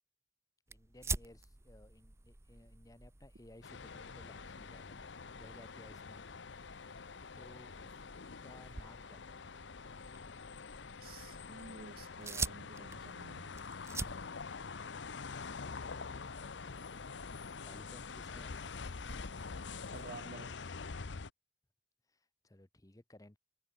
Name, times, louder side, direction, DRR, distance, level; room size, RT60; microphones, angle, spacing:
voice 1, 0.7-6.2 7.3-8.0 8.4-9.5 16.4-19.0 22.1-23.4, left 1 dB, 20° left, 0.9 m, -59 dB
sound 1, 0.7-20.3, right 4 dB, 15° right, 0.6 m, -48 dB
sound 2, 3.6-21.3, left 4 dB, 70° left, 0.8 m, -46 dB
voice 2, 11.0-13.6 19.9-20.5, right 3 dB, 50° right, 0.9 m, -51 dB
head